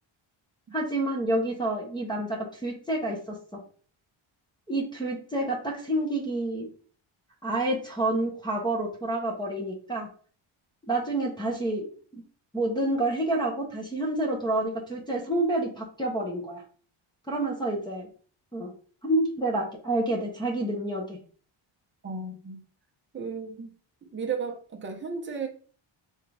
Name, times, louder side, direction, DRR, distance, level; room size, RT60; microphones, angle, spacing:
voice 1, 0.7-3.6 4.7-6.7 7.4-10.1 10.9-12.2 12.5-16.6 17.3-18.1 18.5-18.7 19.0-21.2, right 1 dB, 10° left, 0.9 m, -28 dB
voice 2, 22.0-22.6 23.1-23.7 24.1-25.5, right 5 dB, 25° right, 0.8 m, -34 dB
3.7 x 3.6 x 3.4 m
wide cardioid pair, 135°, 49 cm